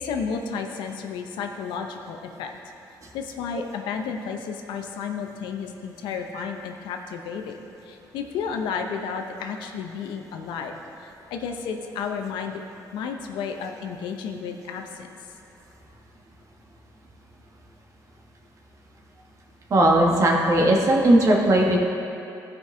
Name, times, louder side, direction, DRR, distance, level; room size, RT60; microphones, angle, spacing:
voice 1, 0.0-2.6 3.1-7.6 7.8-10.7 11.0-12.6 12.9-15.1, left 6 dB, 90° left, 4 dB, 0.7 m, -32 dB
voice 2, 19.7-21.8, right 1 dB, 45° right, -1 dB, 1.4 m, -18 dB
15.0 x 5.3 x 3.4 m, 2.8 s
cardioid pair, 105°, 8 cm